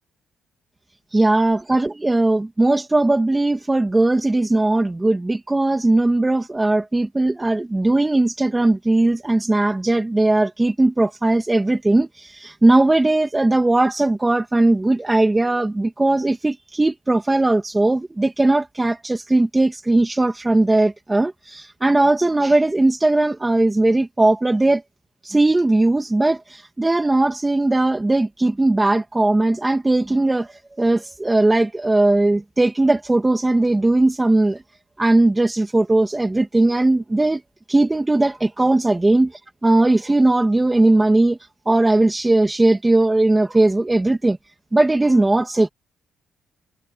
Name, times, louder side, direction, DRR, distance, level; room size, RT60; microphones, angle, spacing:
voice 1, 1.1-24.8 25.2-34.6 35.0-37.4 37.7-41.4 41.7-44.4 44.7-45.7, right 2 dB, 15° right, 2.5 m, -18 dB
cardioid pair, 90°, 0 cm